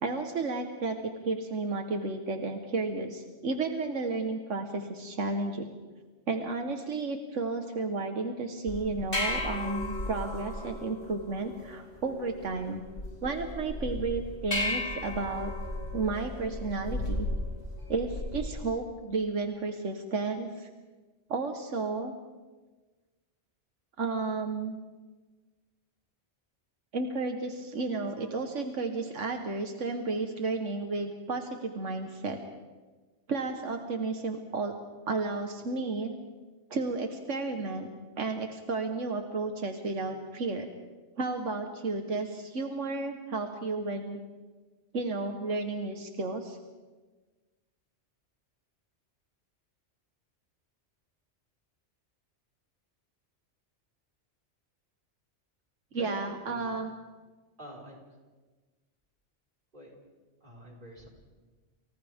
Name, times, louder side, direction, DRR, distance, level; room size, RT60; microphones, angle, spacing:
voice 1, 0.0-5.8 6.3-12.8 13.2-15.5 15.9-17.3 17.9-20.7 21.3-22.1 24.0-24.8 26.9-32.4 33.3-34.7 35.1-36.1 36.7-37.9 38.2-40.7 41.2-44.2 44.9-46.6 55.9-56.9, right 3 dB, 90° right, 4 dB, 1.7 m, -32 dB
sound 1, 8.7-18.6, left 1 dB, 60° left, 6.1 m, -35 dB
voice 2, 55.9-56.7 57.6-58.0 59.7-59.9 60.4-61.1, equal, 45° right, -3 dB, 5.3 m, -47 dB
30.0 x 29.0 x 3.6 m, 1.3 s
omnidirectional pair, 1.2 m